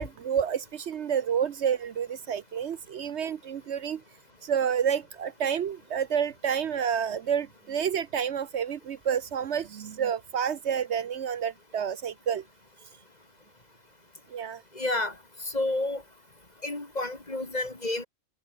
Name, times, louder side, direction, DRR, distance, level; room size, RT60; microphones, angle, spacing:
voice 1, 0.0-4.0 4.4-12.4 14.3-14.6, right 8 dB, 65° right, 1.0 m, -29 dB
voice 2, 14.8-15.1 15.5-16.0 16.6-18.1, left 2 dB, 35° left, 2.8 m, -30 dB
omnidirectional pair, 1.3 m